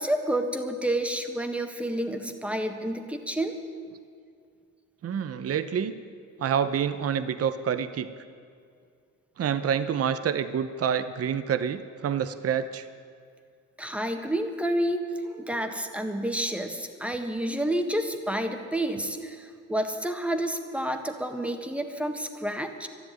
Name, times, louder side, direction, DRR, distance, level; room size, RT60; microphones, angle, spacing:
voice 1, 0.0-3.6 13.8-22.9, right 1 dB, 5° right, 6 dB, 1.5 m, -29 dB
voice 2, 5.0-5.9 6.4-8.1 9.4-12.9, right 8 dB, 50° right, 12 dB, 0.8 m, -27 dB
12.5 x 11.0 x 9.0 m, 2.3 s
cardioid pair, 90°, 30 cm